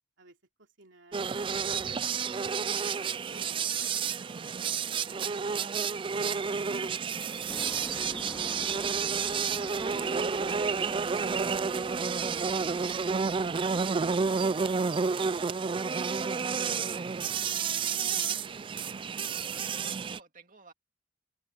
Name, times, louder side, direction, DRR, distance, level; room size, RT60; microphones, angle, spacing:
voice 1, 0.2-1.7 2.1-5.6 6.1-11.2 17.5-18.7, right 2 dB, 75° right, 3.1 m, -55 dB
sound 1, 1.1-20.2, right 5 dB, 25° right, 0.3 m, -30 dB
sound 2, 7.5-16.5, equal, 10° left, 2.5 m, -46 dB
voice 2, 19.5-20.7, right 5 dB, 45° right, 2.4 m, -54 dB
open air
head